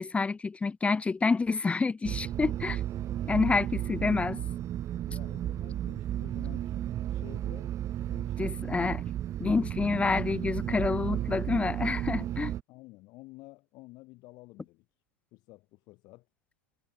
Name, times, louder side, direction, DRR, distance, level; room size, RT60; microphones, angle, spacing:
voice 1, 0.0-2.8 3.3-4.4 8.4-9.0 9.4-12.5, left 4 dB, 10° left, 1.1 m, -28 dB
sound 1, 2.0-12.6, right 12 dB, 30° right, 1.0 m, -33 dB
voice 2, 5.1-7.7 8.0-8.6 12.7-14.9 15.3-16.3, left 21 dB, 45° left, 7.5 m, -51 dB
hypercardioid pair, 105°, 10 cm